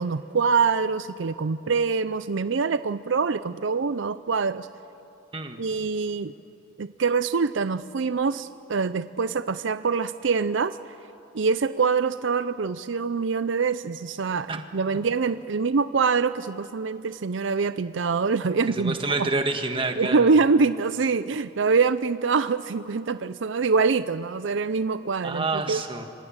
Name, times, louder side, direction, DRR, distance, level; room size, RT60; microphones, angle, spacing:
voice 1, 0.0-4.7 5.6-6.3 6.8-10.9 11.3-19.3 20.0-25.8, right 5 dB, 70° right, 13 dB, 0.5 m, -25 dB
voice 2, 18.7-20.3 25.2-26.1, right 3 dB, 25° right, 5 dB, 1.7 m, -28 dB
26.0 x 25.0 x 8.8 m, 2.9 s
head